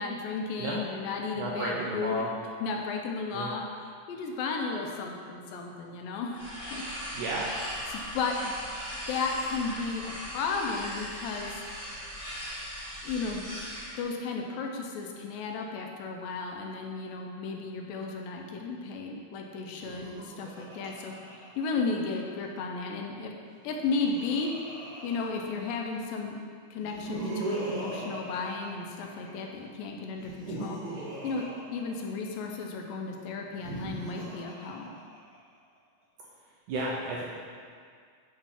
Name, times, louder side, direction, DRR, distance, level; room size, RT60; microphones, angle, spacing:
voice 1, 0.0-2.2 2.6-3.6 4.1-6.4 6.7-6.8 7.9-8.5 9.1-11.6 13.0-13.6 14.0-23.3 23.6-26.4 26.7-30.8 31.2-31.5 31.7-34.9, left 4 dB, 80° left, 1 dB, 2.3 m, -34 dB
voice 2, 1.4-2.3 3.3-3.5 7.1-7.5 36.7-37.2, right 2 dB, 75° right, -4 dB, 1.9 m, -32 dB
sound 1, 6.3-14.0, equal, 25° left, 0.6 m, -39 dB
Laughter, 19.7-22.2 23.5-25.9 26.8-29.3 30.1-32.6 33.4-35.4, right 2 dB, 30° right, 1.0 m, -39 dB
8.1 x 3.2 x 5.7 m, 2.1 s
omnidirectional pair, 4.1 m